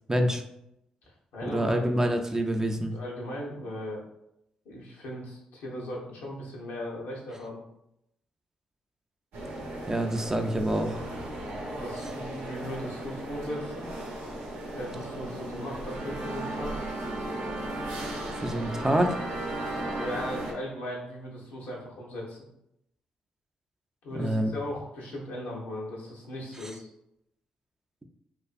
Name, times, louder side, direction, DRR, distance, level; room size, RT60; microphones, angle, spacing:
voice 1, 0.1-0.4 1.4-2.9 9.9-11.0 18.4-19.2 24.1-24.5, right 1 dB, 20° right, 4 dB, 0.3 m, -26 dB
voice 2, 1.3-1.9 2.9-4.0 4.6-7.6 11.7-13.9 14.7-16.8 19.7-22.4 24.0-26.9, left 1 dB, 80° left, -4 dB, 0.7 m, -38 dB
sound 1, 9.3-20.5, right 1 dB, 80° right, 0.6 m, -36 dB
2.4 x 2.4 x 2.4 m, 0.82 s
supercardioid pair, 50°, 3 cm